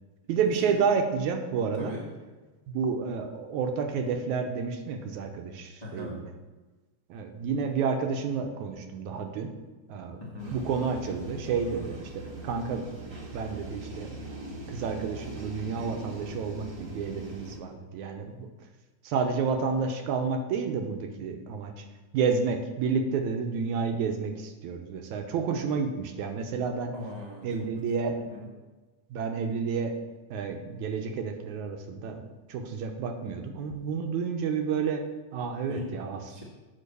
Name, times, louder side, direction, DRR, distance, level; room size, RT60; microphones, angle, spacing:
voice 1, 0.3-1.9 2.7-6.3 7.1-9.5 9.9-10.2 10.5-12.9 13.3-14.1 14.7-18.5 19.0-21.9 22.1-26.9 27.4-28.2 29.1-29.9 30.3-32.2 32.5-35.1 35.3-36.2, right 5 dB, 75° right, 5 dB, 2.1 m, -30 dB
voice 2, 5.8-6.2 10.2-10.6 26.9-27.4 28.3-28.5 35.7-35.9 36.2-36.4, left 2 dB, 75° left, -3 dB, 0.3 m, -39 dB
sound 1, 10.4-17.6, right 2 dB, 35° right, 1.4 m, -41 dB
8.6 x 6.0 x 6.8 m, 1.2 s
omnidirectional pair, 3.7 m